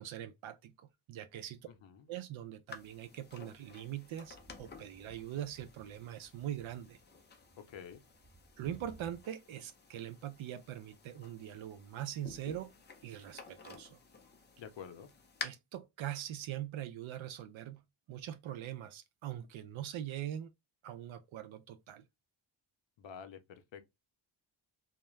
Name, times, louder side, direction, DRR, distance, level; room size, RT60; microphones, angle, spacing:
voice 1, 0.0-1.7 2.1-7.0 8.6-12.7 13.0-14.0 15.4-17.8 18.1-20.5 20.8-22.0, right 11 dB, 75° right, 0.5 m, -42 dB
sound 1, 1.5-1.9 2.8-9.2, right 2 dB, 25° right, 1.1 m, -61 dB
voice 2, 1.7-2.1 7.7-8.0 14.6-15.1 23.0-23.8, left 7 dB, 65° left, 0.6 m, -49 dB
sound 2, 2.7-15.4, left 5 dB, 25° left, 0.4 m, -52 dB
2.3 x 2.1 x 3.0 m
wide cardioid pair, 130°, 48 cm